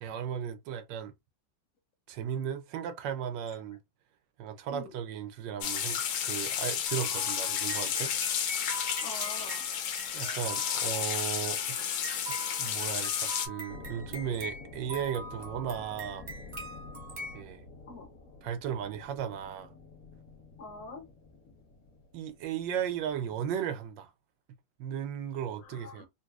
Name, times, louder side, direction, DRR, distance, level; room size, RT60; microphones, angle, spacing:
voice 1, 0.0-1.1 2.1-3.8 4.4-8.5 10.1-11.9 12.4-16.2 17.3-17.6 18.4-19.7 22.1-24.1 24.8-26.1, right 9 dB, 75° right, 1.2 m, -36 dB
sound 1, 5.6-13.5, left 8 dB, 90° left, 1.5 m, -32 dB
sound 2, 6.9-17.4, right 1 dB, 40° right, 0.6 m, -43 dB
voice 2, 9.0-9.7 17.9-18.1 20.6-21.1 25.7-26.1, left 2 dB, 75° left, 1.6 m, -44 dB
sound 3, 13.7-23.6, left 3 dB, 50° left, 1.4 m, -49 dB
4.0 x 2.6 x 2.3 m
omnidirectional pair, 2.0 m